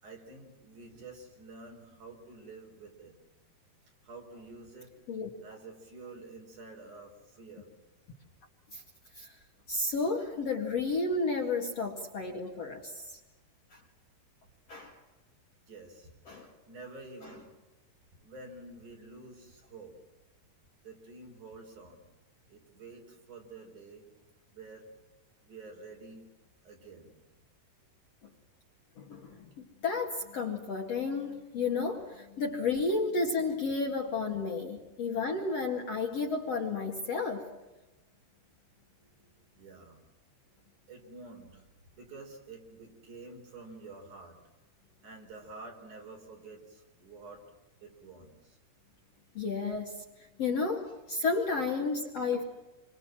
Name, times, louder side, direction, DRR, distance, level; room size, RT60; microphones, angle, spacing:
voice 1, 0.0-3.2 4.0-4.9 5.4-7.7 15.7-16.1 16.7-17.5 18.2-20.0 20.8-22.1 22.5-24.1 24.5-24.8 25.4-26.3 26.6-27.2 39.5-40.0 40.9-41.6 42.0-44.4 45.0-47.4 47.8-48.6, right 3 dB, 50° right, 2 dB, 5.8 m, -49 dB
voice 2, 9.7-13.2 13.7-13.8 14.7-14.9 16.3-16.5 17.2-17.3 29.0-37.5 49.3-50.0 50.4-52.4, left 4 dB, 45° left, 1 dB, 2.7 m, -32 dB
29.0 x 24.0 x 7.6 m, 1.1 s
omnidirectional pair, 4.7 m